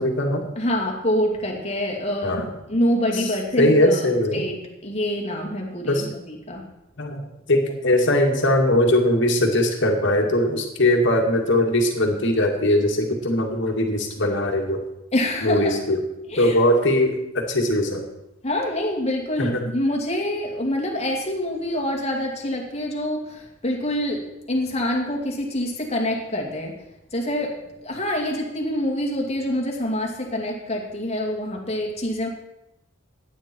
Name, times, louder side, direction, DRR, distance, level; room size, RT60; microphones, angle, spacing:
voice 1, 0.0-0.5 2.2-2.4 3.1-3.2 3.6-4.4 5.9-6.1 7.0-14.8 15.4-16.0 16.4-18.0 19.4-19.6, left 1 dB, 65° left, 2 dB, 2.1 m, -20 dB
voice 2, 0.6-4.1 4.3-4.5 4.8-6.7 15.1-15.7 16.3-16.6 18.4-26.8 27.1-32.3, left 1 dB, 30° left, 0 dB, 2.4 m, -26 dB
16.0 x 9.6 x 4.5 m, 0.91 s
head